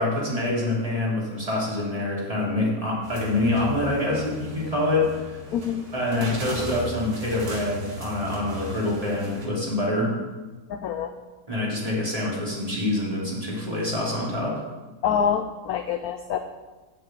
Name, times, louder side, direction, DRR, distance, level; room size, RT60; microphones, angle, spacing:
voice 1, 0.0-5.3 5.9-10.1 11.5-14.6, left 2 dB, 20° right, -5 dB, 3.0 m, -26 dB
sound 1, 3.0-9.5, right 1 dB, 50° right, 2.4 m, -38 dB
voice 2, 5.5-5.8 10.7-11.1 15.0-16.4, left 8 dB, 70° left, 8 dB, 0.9 m, -26 dB
8.0 x 6.8 x 8.3 m, 1.3 s
omnidirectional pair, 2.0 m